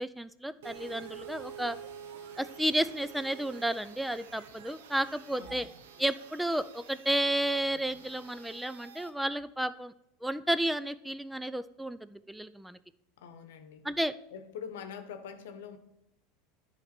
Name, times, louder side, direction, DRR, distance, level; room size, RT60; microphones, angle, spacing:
voice 1, 0.0-1.8 2.4-5.7 6.0-9.9 10.2-12.8 13.8-14.1, right 1 dB, 5° right, 14 dB, 0.3 m, -32 dB
sound 1, 0.6-9.1, right 7 dB, 80° right, 0.8 m, -48 dB
voice 2, 5.4-5.7 13.2-13.9 14.3-15.8, left 7 dB, 80° left, 9 dB, 0.9 m, -44 dB
9.7 x 3.3 x 5.8 m, 0.85 s
hypercardioid pair, 100°, 0 cm